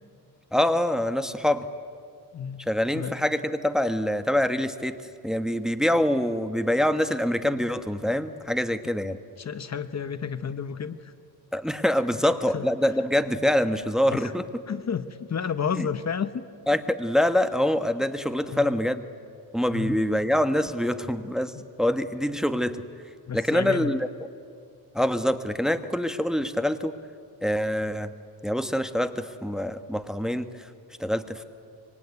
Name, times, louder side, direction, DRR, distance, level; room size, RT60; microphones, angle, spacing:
voice 1, 0.5-1.7 2.7-9.2 11.5-14.4 15.8-15.9 16.7-19.0 19.5-22.8 23.3-24.1 24.9-26.9 27.4-28.1 28.4-30.5 31.0-31.4, left 1 dB, ahead, 9 dB, 1.2 m, -25 dB
voice 2, 9.4-11.1 12.5-12.7 14.1-14.3 14.7-16.5 18.4-18.7 19.7-20.0 21.5-21.6 23.3-23.9, left 7 dB, 40° left, 12 dB, 1.0 m, -31 dB
25.5 x 24.0 x 9.6 m, 2.3 s
cardioid pair, 100°, 40 cm